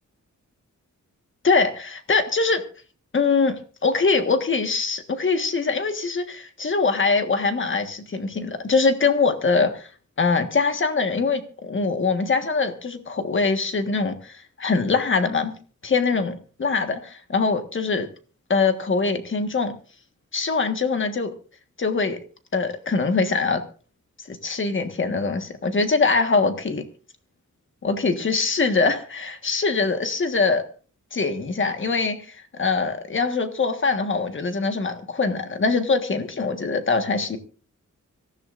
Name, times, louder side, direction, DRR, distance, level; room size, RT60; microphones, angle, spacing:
voice 1, 1.4-2.6 3.1-9.9 10.2-15.5 15.8-18.1 18.5-19.7 20.3-21.3 21.8-22.2 22.5-23.6 24.3-26.8 27.8-30.6 31.1-37.4, left 4 dB, 40° left, 7 dB, 1.5 m, -23 dB
25.0 x 14.5 x 2.6 m, 0.39 s
wide cardioid pair, 175°, 31 cm